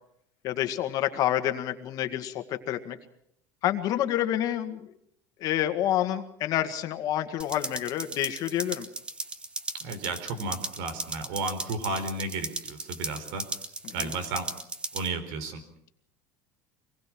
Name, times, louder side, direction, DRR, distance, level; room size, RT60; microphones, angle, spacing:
voice 1, 0.4-3.0 3.6-4.9 5.4-8.9 13.8-14.1, left 12 dB, 45° left, 7 dB, 1.8 m, -28 dB
sound 1, 7.4-15.1, right 2 dB, 10° right, 1.2 m, -37 dB
voice 2, 9.8-13.5 13.9-14.5 14.9-15.6, right 3 dB, 70° right, 11 dB, 4.2 m, -33 dB
25.0 x 20.0 x 6.1 m, 0.72 s
cardioid pair, 155°, 9 cm